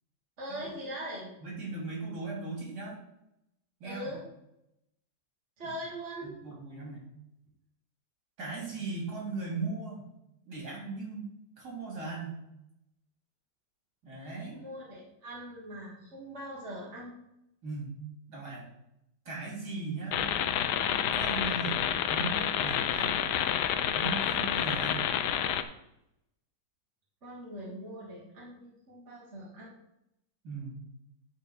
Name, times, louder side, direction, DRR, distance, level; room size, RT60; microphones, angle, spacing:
voice 1, 0.4-1.3 3.8-4.2 5.6-6.3 14.5-17.1 27.2-29.7, equal, 40° right, -5 dB, 2.0 m, -41 dB
voice 2, 1.4-3.0 3.8-4.1 5.6-5.7 6.2-7.1 8.4-10.1 10.5-11.3 11.6-12.4 14.0-14.6 17.6-17.9 18.3-18.6 19.2-20.3 21.1-23.2 23.9-25.1 30.4-30.7, right 3 dB, 60° right, -4 dB, 3.3 m, -38 dB
sound 1, 20.1-25.6, left 9 dB, 75° left, 1.1 m, -29 dB
10.5 x 4.2 x 4.3 m, 0.83 s
omnidirectional pair, 2.0 m